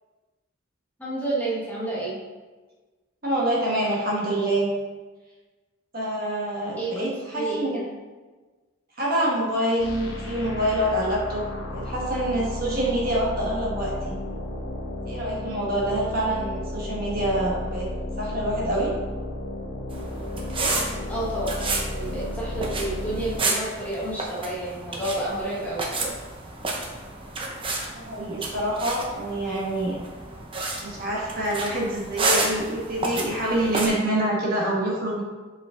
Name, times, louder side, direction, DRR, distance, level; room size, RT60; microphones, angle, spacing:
voice 1, 1.0-2.2 6.8-7.9 16.2-16.3 21.1-26.1, right 1 dB, 10° left, -7 dB, 1.3 m, -30 dB
voice 2, 3.2-4.7 5.9-7.8 9.0-11.4 11.7-14.2 15.0-17.9 18.2-18.9 27.9-30.0 30.8-35.2, right 1 dB, 45° right, -4 dB, 1.5 m, -26 dB
sound 1, 9.8-23.4, left 1 dB, 65° left, 1.0 m, -33 dB
sound 2, 19.9-33.9, right 2 dB, 25° right, 0.7 m, -31 dB
5.3 x 5.0 x 3.8 m, 1.3 s
head